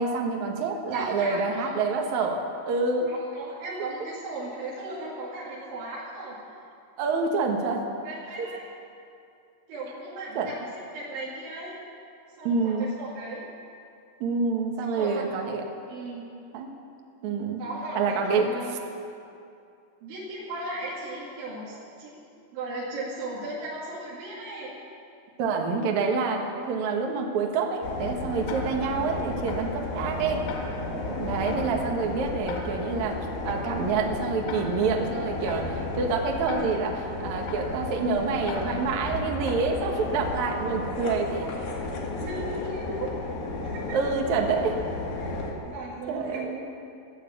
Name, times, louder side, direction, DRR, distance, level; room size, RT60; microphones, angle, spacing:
voice 1, 0.0-3.1 7.0-7.9 8.4-8.5 10.4-10.5 12.5-12.9 14.2-15.6 16.5-16.7 17.2-17.6 18.0-18.5 25.4-30.4 30.9-33.2 33.5-41.6 43.9-44.8 46.1-46.6, right 4 dB, 65° right, 2 dB, 1.9 m, -27 dB
voice 2, 0.9-1.7 3.1-6.4 8.0-8.6 9.7-10.7 10.9-11.7 12.4-13.4 14.9-15.3 15.9-16.3 17.6-18.8 20.0-22.2 22.5-24.7 42.2-43.1 43.6-44.0 45.2-46.4, right 2 dB, 90° right, -8 dB, 4.8 m, -36 dB
sound 1, 27.8-45.5, left 2 dB, 60° left, 3.6 m, -33 dB
Tick-tock, 28.5-40.3, left 4 dB, 90° left, 4.5 m, -43 dB
14.5 x 11.0 x 8.6 m, 2.5 s
omnidirectional pair, 5.2 m